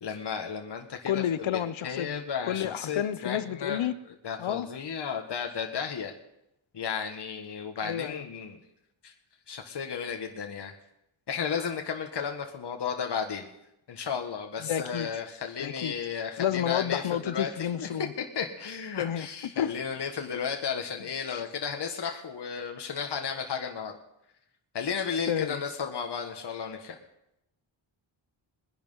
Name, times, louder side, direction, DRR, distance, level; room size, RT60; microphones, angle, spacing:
voice 1, 0.0-1.2 1.8-3.9 4.2-6.1 6.7-8.6 9.0-9.1 9.5-10.7 11.3-13.5 13.9-17.5 17.8-17.9 18.3-23.9 24.7-27.0, left 6 dB, 55° left, 3 dB, 1.6 m, -33 dB
voice 2, 1.1-3.9 4.4-4.7 7.8-8.2 14.6-15.1 15.6-15.9 16.4-18.1 19.0-19.3 19.5-19.7 21.3-21.4 25.3-25.6, left 10 dB, 75° left, 14 dB, 0.9 m, -30 dB
21.0 x 10.5 x 5.6 m, 0.84 s
wide cardioid pair, 110°, 48 cm